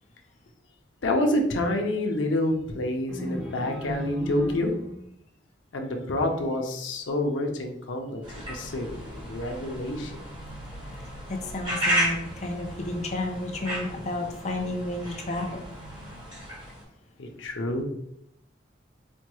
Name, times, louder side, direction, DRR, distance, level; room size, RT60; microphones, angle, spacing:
voice 1, 1.0-4.7 5.7-8.2 8.5-10.2 17.2-17.8, left 1 dB, 90° left, 3 dB, 0.6 m, -28 dB
sound 1, 3.1-5.1, left 1 dB, 5° right, 1.1 m, -35 dB
sound 2, 8.2-16.8, equal, 25° right, 1.2 m, -34 dB
voice 2, 11.3-15.6, left 2 dB, 35° left, 2 dB, 0.5 m, -32 dB
4.3 x 2.2 x 3.0 m, 0.75 s
head